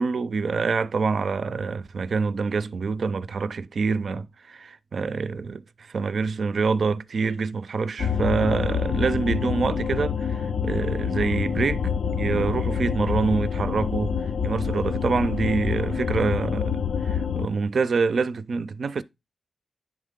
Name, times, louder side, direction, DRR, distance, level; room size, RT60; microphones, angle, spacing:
voice 1, 0.0-11.8 12.1-14.2 14.4-19.0, right 4 dB, 65° right, 0.4 m, -26 dB
sound 1, 8.0-17.5, left 6 dB, 85° left, 0.4 m, -27 dB
9.7 x 3.7 x 3.5 m
wide cardioid pair, 85°, 0 cm